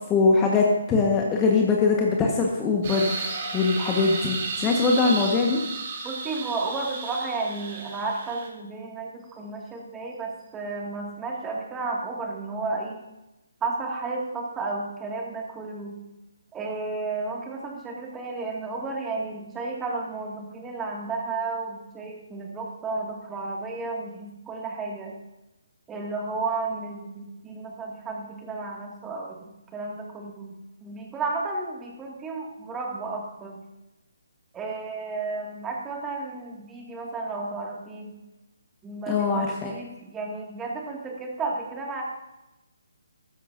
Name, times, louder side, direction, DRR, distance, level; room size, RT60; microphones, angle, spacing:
voice 1, 0.1-5.6 39.1-39.7, left 4 dB, 15° left, 0 dB, 1.4 m, -22 dB
sound 1, 2.8-8.5, right 4 dB, 40° right, 3.2 m, -33 dB
voice 2, 6.0-13.0 13.6-16.0 16.5-25.1 25.9-33.6 34.5-38.1 38.8-42.0, right 3 dB, 10° right, -1 dB, 2.2 m, -33 dB
15.0 x 13.0 x 2.7 m, 0.97 s
figure-of-eight pair, 140°, 0 cm